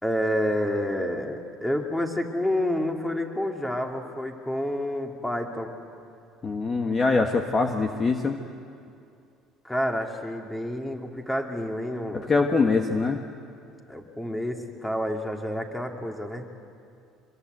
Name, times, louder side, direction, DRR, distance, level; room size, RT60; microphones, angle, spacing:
voice 1, 0.0-5.8 9.6-12.3 13.9-16.4, left 1 dB, 5° left, 2 dB, 2.7 m, -29 dB
voice 2, 6.4-8.4 12.1-13.2, left 4 dB, 30° left, 4 dB, 1.4 m, -23 dB
25.0 x 22.5 x 8.0 m, 2.5 s
cardioid pair, 110°, 0 cm